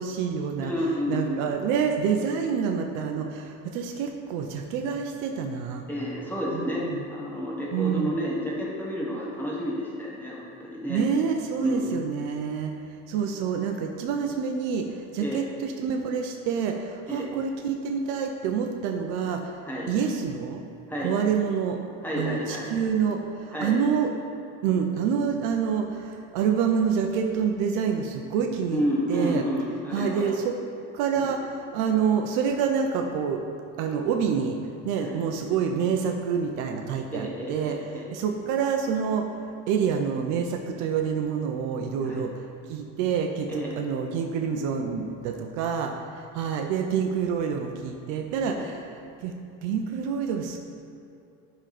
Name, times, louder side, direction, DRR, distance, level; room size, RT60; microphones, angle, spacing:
voice 1, 0.0-0.7 1.1-5.9 6.5-7.0 7.7-8.2 10.9-19.6 19.9-20.6 21.0-21.8 22.2-24.1 24.6-28.8 29.1-29.4 29.9-30.6 30.9-31.4 31.7-33.4 33.8-34.6 34.8-39.4 39.7-49.3 49.6-50.6, right 6 dB, 55° right, 4 dB, 0.7 m, -27 dB
voice 2, 0.6-1.6 5.9-11.0 11.6-12.0 15.2-15.4 17.1-17.3 19.6-19.9 20.9-21.1 22.0-22.7 23.5-23.8 28.7-30.3 31.2-31.3 35.0-35.2 37.1-38.1 42.0-42.2 43.5-43.7 48.6-48.7, equal, 5° left, -5 dB, 1.5 m, -30 dB
11.0 x 3.9 x 4.9 m, 2.6 s
supercardioid pair, 145°, 36 cm